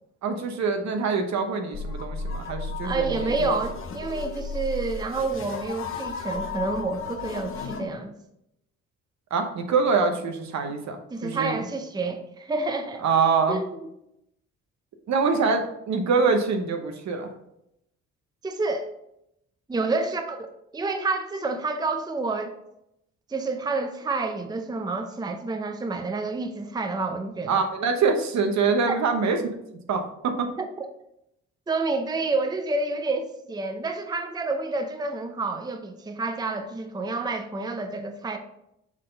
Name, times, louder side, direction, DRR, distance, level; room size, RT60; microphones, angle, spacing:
voice 1, 0.2-3.5 9.3-11.5 13.0-13.6 15.1-17.3 27.5-29.4 29.7-30.5, right 5 dB, 65° right, 6 dB, 1.0 m, -25 dB
sound 1, 1.7-7.9, left 4 dB, 45° left, 0.9 m, -34 dB
voice 2, 2.8-8.1 11.1-13.0 13.5-13.7 18.4-18.9 19.7-20.5 20.7-22.6 23.3-27.6 28.9-29.0 30.6-30.9 31.7-38.4, right 3 dB, 15° right, 6 dB, 0.6 m, -29 dB
6.5 x 3.8 x 3.9 m, 0.79 s
cardioid pair, 90°, 30 cm